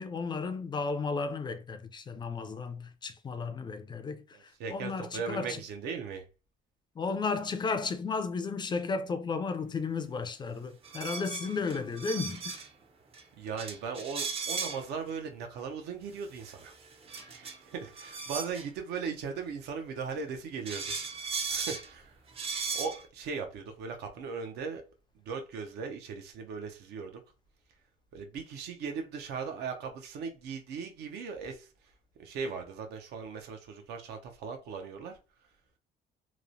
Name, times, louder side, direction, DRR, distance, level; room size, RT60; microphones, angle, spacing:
voice 1, 0.0-5.6 7.0-12.6 17.2-17.3, left 4 dB, 25° left, 0.3 m, -34 dB
voice 2, 4.3-6.2 13.4-16.7 17.3-21.0 21.5-22.1 22.7-24.8 25.2-27.2 28.1-31.7 32.2-35.2, right 5 dB, 80° right, 0.6 m, -38 dB
sound 1, 10.8-12.7 13.1-13.2 13.6-14.9 16.2-18.7 20.1-20.2 20.6-21.9 22.3-23.0, right 5 dB, 35° right, 0.5 m, -37 dB
3.0 x 2.0 x 2.5 m
cardioid pair, 110°, 17 cm